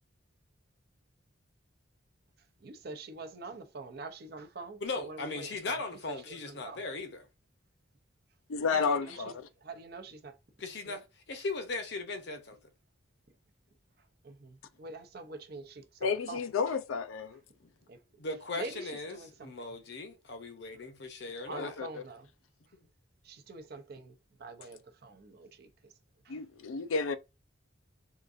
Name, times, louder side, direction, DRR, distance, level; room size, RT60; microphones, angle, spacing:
voice 1, 2.6-5.8 6.2-6.8 8.7-9.3 9.6-10.4 10.9-11.0 14.2-16.4 17.9-18.0 18.6-19.5 21.4-22.3 23.2-25.9 26.2-26.4, right 3 dB, 50° right, 0.6 m, -45 dB
voice 2, 4.8-7.3 10.6-12.6 17.6-17.7 18.2-21.8, left 3 dB, 55° left, 0.7 m, -38 dB
voice 3, 8.5-9.3 16.0-17.4 21.6-22.0 26.3-27.2, left 5 dB, 85° left, 0.4 m, -31 dB
3.7 x 2.4 x 2.5 m
head